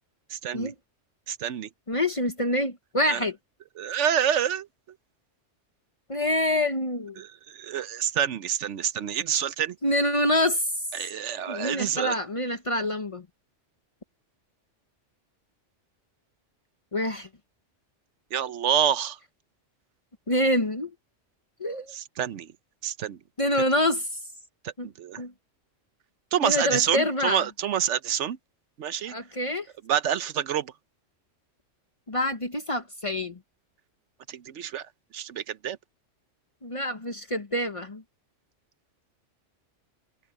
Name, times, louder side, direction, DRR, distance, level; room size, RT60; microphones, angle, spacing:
voice 1, 0.3-0.7 1.3-1.7 3.1-3.2 3.8-4.7 7.2-9.8 10.9-12.2 18.3-19.2 21.9-22.5 22.8-23.2 24.6-25.2 26.3-28.4 28.8-29.2 29.9-30.7 34.3-34.9 35.1-35.8, right 9 dB, 75° right, 1.1 m, -27 dB
voice 2, 1.9-3.4 6.1-7.2 9.8-10.7 11.5-13.3 16.9-17.3 20.3-20.9 21.6-21.9 23.4-24.2 24.8-24.9 25.2-25.3 26.4-27.4 29.1-29.7 32.1-33.4 36.6-38.0, left 1 dB, 30° left, 1.0 m, -26 dB
omnidirectional pair, 1.2 m